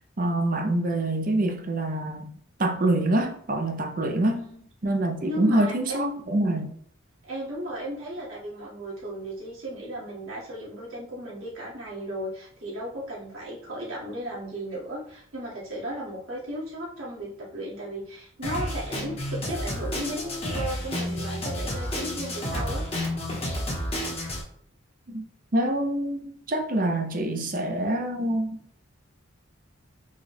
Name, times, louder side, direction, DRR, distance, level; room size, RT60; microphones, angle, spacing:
voice 1, 0.2-2.3 2.6-4.4 4.8-6.7 25.1-25.2 25.5-28.6, right 1 dB, 40° right, 0.6 m, -25 dB
voice 2, 5.2-6.1 7.3-22.8, equal, 85° right, 1.9 m, -35 dB
Drum kit, 18.4-24.4, left 1 dB, 30° left, 0.9 m, -31 dB
4.8 x 2.3 x 4.2 m
head